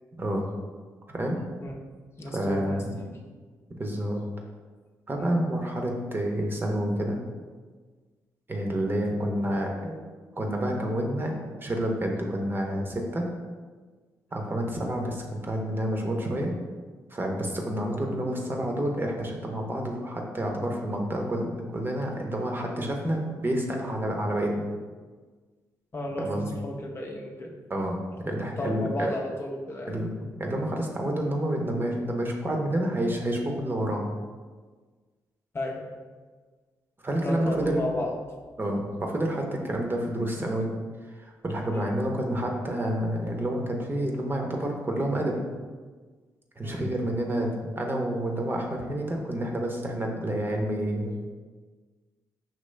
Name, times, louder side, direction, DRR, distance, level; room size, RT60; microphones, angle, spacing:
voice 1, 1.1-1.4 2.3-3.1 3.8-4.2 5.1-7.2 8.5-10.0 10.3-11.3 11.6-13.2 14.3-16.5 17.1-24.7 26.2-26.6 27.7-28.0 28.3-29.1 29.9-34.0 37.0-37.8 38.6-40.7 41.0-45.4 46.6-47.5 47.8-51.2, right 1 dB, 30° right, 1 dB, 0.9 m, -29 dB
voice 2, 2.2-3.1 5.1-5.3 9.1-9.3 25.9-27.6 28.6-30.0 35.5-35.8 37.2-38.1 41.7-41.8 46.6-46.8, left 1 dB, 35° left, 0 dB, 0.7 m, -33 dB
5.3 x 3.0 x 3.3 m, 1.4 s
cardioid pair, 65°, 7 cm